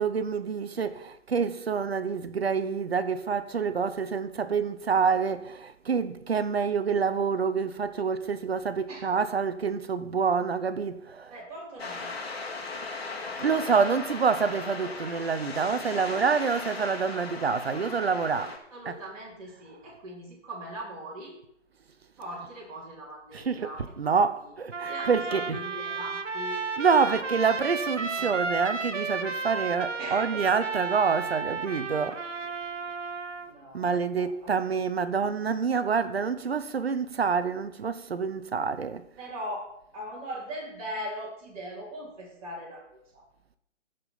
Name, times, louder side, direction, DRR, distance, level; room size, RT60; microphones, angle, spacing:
voice 1, 0.0-11.4 13.4-18.6 18.8-19.0 23.3-25.6 26.8-32.2 33.7-39.1, right 5 dB, 55° right, 1.0 m, -27 dB
voice 2, 11.3-12.3 18.4-21.4 22.2-24.5 24.8-26.6 27.0-27.1 28.1-28.4 30.0-30.4 33.4-34.7 39.2-39.6 39.9-43.2, equal, 30° right, 3.8 m, -40 dB
sound 1, 11.8-18.6, left 3 dB, 55° left, 2.5 m, -37 dB
Trumpet, 24.7-33.5, right 4 dB, 80° right, 1.3 m, -33 dB
15.0 x 5.3 x 5.7 m
figure-of-eight pair, 150°, 37 cm